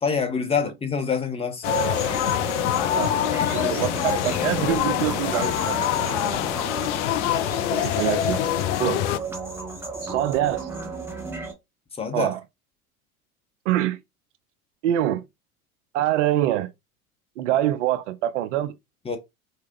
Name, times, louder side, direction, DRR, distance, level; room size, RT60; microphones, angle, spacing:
voice 1, 0.0-1.7 12.0-12.3 19.1-19.2, left 6 dB, 15° left, 0.9 m, -26 dB
sound 1, 1.6-9.2, left 13 dB, 55° left, 0.5 m, -25 dB
sound 2, 1.7-11.5, right 3 dB, 5° right, 1.2 m, -33 dB
voice 2, 3.0-5.9 7.7-8.4 8.8-9.0 10.0-10.7 12.1-12.4 13.7-14.0 14.8-15.2 15.9-16.7 17.4-18.7, right 12 dB, 55° right, 0.5 m, -25 dB
4.6 x 2.8 x 2.5 m
figure-of-eight pair, 85°, 44 cm